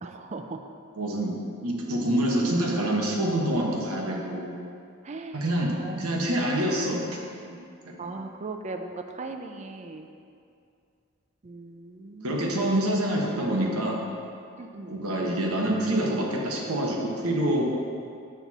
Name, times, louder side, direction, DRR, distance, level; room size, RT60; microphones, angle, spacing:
voice 1, 0.0-0.6 5.0-5.4 5.8-6.1 8.0-10.1 11.4-12.6 14.6-14.9, right 3 dB, 30° right, 5 dB, 0.4 m, -38 dB
voice 2, 1.0-1.3 1.6-4.5 5.3-5.7 6.0-7.0 7.5-7.6 7.8-8.1 12.2-14.0 14.9-17.7, right 1 dB, 85° right, -1 dB, 1.2 m, -26 dB
7.1 x 4.2 x 6.0 m, 2.4 s
head